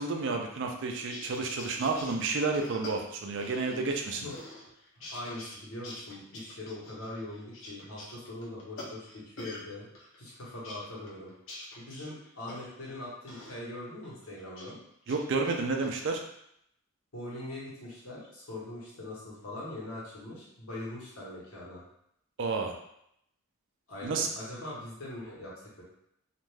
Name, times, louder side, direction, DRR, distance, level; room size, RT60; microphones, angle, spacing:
voice 1, 0.0-4.3 15.1-16.2 22.4-22.7 24.0-24.3, right 3 dB, 55° right, 3 dB, 0.4 m, -30 dB
sound 1, 0.9-4.0 4.3-5.6 5.8-9.6 9.9-12.9 13.3-13.6 14.0-14.7 15.0-15.9, left 1 dB, 60° left, 0.6 m, -46 dB
voice 2, 5.0-9.9 10.2-11.3 11.8-14.8 17.1-21.8 23.9-25.5 25.8-25.9, left 1 dB, 75° left, -6 dB, 1.1 m, -42 dB
2.4 x 2.2 x 3.2 m, 0.75 s
head